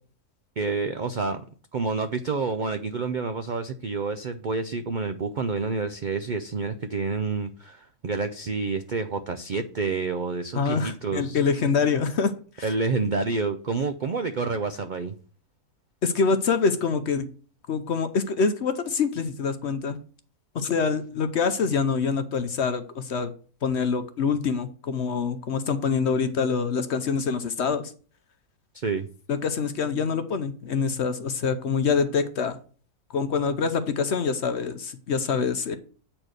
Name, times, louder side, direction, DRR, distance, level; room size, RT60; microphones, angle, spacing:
voice 1, 0.6-1.4 1.7-11.4 12.6-15.1 28.7-29.1, right 4 dB, 70° right, 9 dB, 0.4 m, -28 dB
voice 2, 10.5-12.3 12.6-12.7 16.0-17.3 17.7-20.0 20.5-23.3 23.6-27.9 29.3-32.6 33.1-35.8, left 5 dB, 55° left, 10 dB, 0.8 m, -25 dB
8.8 x 4.4 x 6.4 m, 0.41 s
omnidirectional pair, 1.6 m